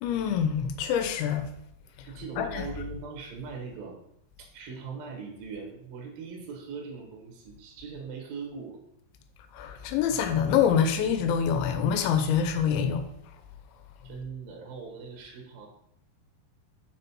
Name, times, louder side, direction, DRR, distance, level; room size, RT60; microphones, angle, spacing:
voice 1, 0.0-1.5 2.4-2.6 9.5-13.1, left 8 dB, 85° left, 3.0 m, -25 dB
voice 2, 2.0-4.0 4.4-8.8 14.0-15.7, right 5 dB, 65° right, 2.7 m, -40 dB
6.2 x 5.3 x 4.4 m
omnidirectional pair, 5.2 m